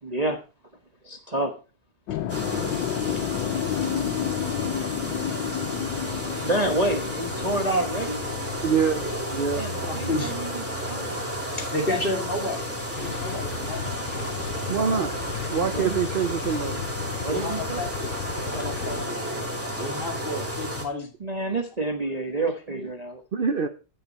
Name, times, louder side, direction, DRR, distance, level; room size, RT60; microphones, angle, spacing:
voice 1, 0.0-0.4 1.0-1.5 6.4-8.2 9.5-11.7 15.7-16.0 17.2-17.8 21.2-23.2, right 2 dB, 25° right, 4 dB, 1.1 m, -28 dB
sound 1, 2.1-12.2 12.5-14.1, left 10 dB, 85° left, 1.4 m, -32 dB
sound 2, 2.3-20.9, equal, 5° right, 2.6 m, -32 dB
voice 2, 8.6-9.0 9.3-9.7 14.7-15.1 15.5-16.8 23.3-23.7, right 6 dB, 80° right, 9 dB, 0.4 m, -25 dB
voice 3, 9.8-10.4 11.7-13.9 14.6-15.2 17.3-18.1 18.4-19.2 19.8-21.1, left 1 dB, 30° left, 1 dB, 3.1 m, -31 dB
Motorcycle / Engine starting / Idling, 12.9-19.1, left 7 dB, 60° left, 0.6 m, -36 dB
10.5 x 9.2 x 4.2 m, 0.33 s
omnidirectional pair, 2.0 m